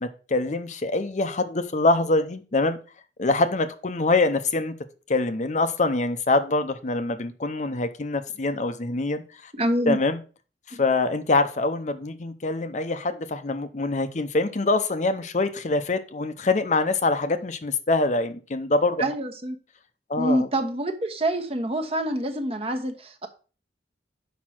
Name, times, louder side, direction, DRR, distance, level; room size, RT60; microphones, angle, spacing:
voice 1, 0.0-2.8 3.2-4.7 5.1-9.5 9.9-10.2 10.7-19.0 20.1-20.5, left 3 dB, 45° left, 0.6 m, -24 dB
voice 2, 9.5-10.0 10.7-10.8 19.0-19.6 20.2-23.3, right 1 dB, 35° right, 1.1 m, -26 dB
6.3 x 5.3 x 5.9 m
head